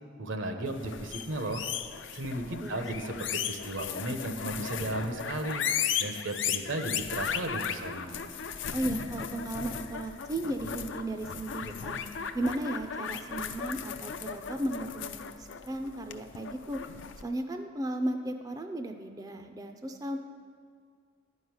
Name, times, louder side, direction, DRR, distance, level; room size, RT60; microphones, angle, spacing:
voice 1, 0.2-1.6 2.1-5.7 6.0-8.2, right 1 dB, 80° right, 5 dB, 1.0 m, -35 dB
sound 1, 0.7-17.2, left 7 dB, 70° left, 0.5 m, -36 dB
voice 2, 8.7-12.0 12.3-16.8 17.2-20.2, right 1 dB, 20° right, 6 dB, 0.4 m, -35 dB
11.0 x 5.4 x 7.9 m, 2.2 s
head